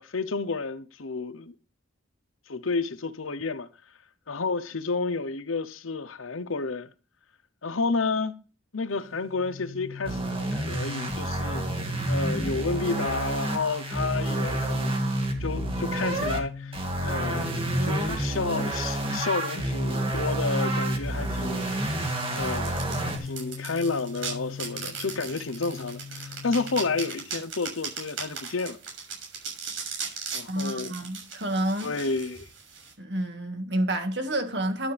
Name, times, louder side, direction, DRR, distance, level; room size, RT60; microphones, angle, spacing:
voice 1, 0.0-1.5 2.5-3.7 4.3-6.9 7.6-8.4 8.7-11.7 12.1-14.9 15.4-22.1 22.3-22.9 23.2-28.8 30.3-30.9 31.8-32.4, left 4 dB, 85° left, 0.9 m, -31 dB
sound 1, 8.9-27.2, left 5 dB, 50° left, 1.9 m, -41 dB
sound 2, 10.0-16.4 16.7-23.2, right 1 dB, 25° right, 2.2 m, -29 dB
sound 3, 21.0-32.9, right 5 dB, 75° right, 6.7 m, -38 dB
voice 2, 30.5-31.9 33.0-34.9, right 1 dB, 55° right, 2.1 m, -29 dB
12.5 x 9.7 x 3.5 m
head